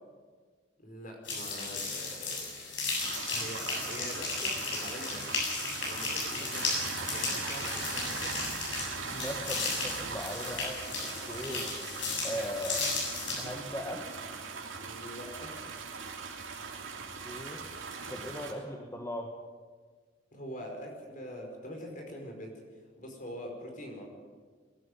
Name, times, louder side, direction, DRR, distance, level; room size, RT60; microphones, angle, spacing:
voice 1, 0.8-2.5 3.3-5.4 5.8-6.6 6.9-8.3 14.8-15.5 20.3-24.1, equal, 45° left, 2 dB, 5.2 m, -44 dB
sound 1, 1.3-13.5, left 3 dB, 75° left, 7.5 m, -35 dB
sound 2, 3.0-18.5, right 5 dB, 80° right, 3.3 m, -40 dB
sound 3, 7.4-8.0 8.8-9.3 10.8-13.2, right 1 dB, 15° right, 6.0 m, -52 dB
voice 2, 9.1-11.8 12.2-12.9 13.4-14.2 17.2-17.7 18.1-19.3, equal, 15° left, 1 dB, 1.6 m, -39 dB
22.5 x 12.5 x 9.9 m, 1.5 s
head